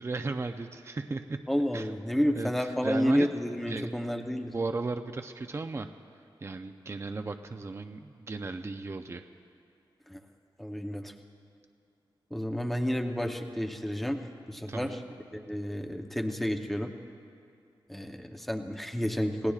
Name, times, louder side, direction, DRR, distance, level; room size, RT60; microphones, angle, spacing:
voice 1, 0.0-1.4 1.7-1.9 2.4-3.3 3.7-3.9 4.5-5.9 6.4-9.2 14.7-15.0, right 3 dB, 30° right, 6 dB, 0.6 m, -35 dB
voice 2, 1.5-4.5 10.1-10.2 10.6-11.1 12.3-14.2 14.5-15.0 15.3-16.9 17.9-19.5, equal, ahead, 4 dB, 0.8 m, -30 dB
28.5 x 17.0 x 2.4 m, 2.4 s
wide cardioid pair, 95°, 9 cm